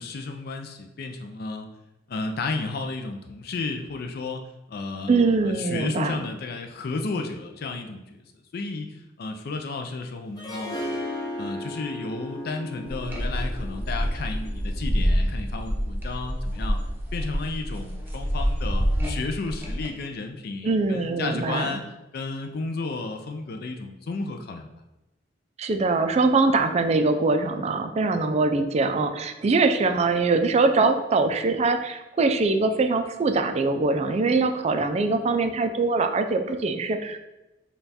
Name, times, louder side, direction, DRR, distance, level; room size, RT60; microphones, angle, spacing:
voice 1, 0.0-1.7 2.1-4.4 4.7-8.2 8.5-10.8 11.3-16.8 17.1-21.8 22.1-24.7, left 3 dB, 55° left, 5 dB, 0.4 m, -33 dB
voice 2, 5.1-6.2 20.6-21.8 25.6-37.2, right 3 dB, 35° right, 7 dB, 0.3 m, -23 dB
Harp, 10.4-15.4, left 1 dB, 20° left, 0.8 m, -36 dB
sound 1, 12.9-19.9, equal, 10° right, 0.7 m, -27 dB
5.5 x 2.3 x 4.1 m, 0.99 s
head